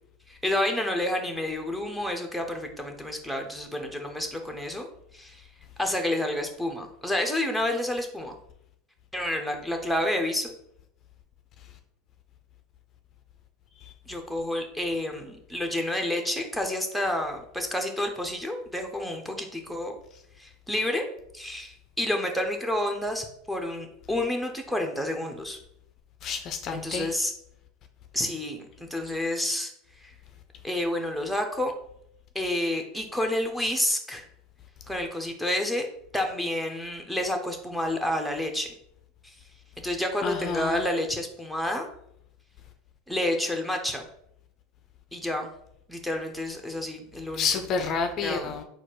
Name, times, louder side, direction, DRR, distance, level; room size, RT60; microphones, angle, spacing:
voice 1, 0.3-4.9 5.1-5.4 5.8-8.3 9.1-10.5 14.1-19.9 20.4-21.0 21.3-25.6 26.7-27.3 28.1-29.7 30.0-30.1 30.6-31.7 32.3-34.2 34.9-35.9 36.1-38.7 39.8-41.9 43.1-44.0 45.1-45.5 45.9-47.5 48.2-48.6, left 1 dB, ahead, 3 dB, 0.9 m, -29 dB
voice 2, 26.2-27.1 40.2-40.8 47.4-48.6, left 5 dB, 45° left, 7 dB, 0.5 m, -29 dB
4.1 x 2.4 x 4.7 m, 0.73 s
hypercardioid pair, 85°, 0 cm